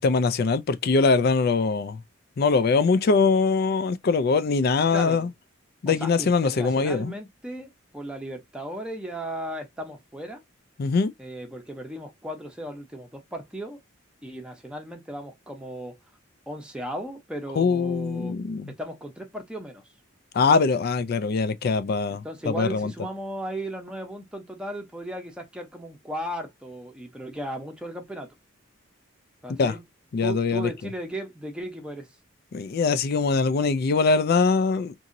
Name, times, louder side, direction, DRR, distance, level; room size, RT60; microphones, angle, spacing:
voice 1, 0.0-2.0 2.4-5.3 5.8-7.1 10.8-11.1 17.6-18.7 20.3-22.9 29.6-29.7 30.1-30.7 32.5-34.9, left 4 dB, 50° left, 0.4 m, -22 dB
voice 2, 4.9-5.3 5.9-10.4 11.2-13.8 14.2-16.0 16.5-18.3 18.7-19.8 22.2-28.3 29.4-29.8 30.2-32.1, right 1 dB, 5° right, 0.7 m, -36 dB
2.9 x 2.7 x 2.5 m
head